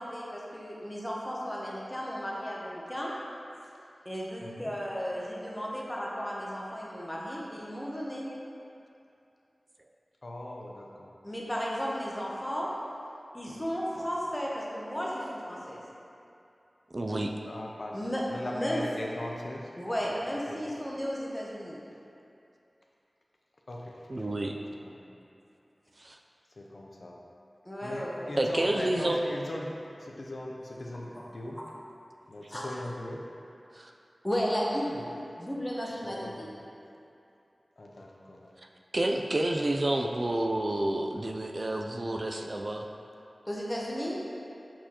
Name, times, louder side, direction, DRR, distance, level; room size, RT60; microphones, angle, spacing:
voice 1, 0.0-3.1 4.0-8.3 11.2-12.7 13.3-15.8 17.9-18.8 19.8-21.8 27.6-28.4 31.1-31.3 32.5-32.7 34.2-35.0 35.4-36.5 43.5-44.2, equal, 15° left, -5 dB, 1.0 m, -34 dB
voice 2, 4.4-4.7 10.2-11.1 17.5-19.7 20.1-20.2 20.5-20.8 21.9-22.0 23.7-24.4 24.8-25.2 26.6-27.2 27.8-29.7 30.0-31.6 32.3-33.2 34.9-35.1 36.0-36.5 37.8-38.5, left 1 dB, 60° left, -1 dB, 0.6 m, -39 dB
voice 3, 16.9-17.3 24.1-24.6 26.0-26.2 28.4-29.2 33.7-33.9 38.9-42.9, right 1 dB, 45° right, 2 dB, 0.3 m, -29 dB
7.4 x 4.5 x 2.9 m, 2.7 s
wide cardioid pair, 80°, 0 cm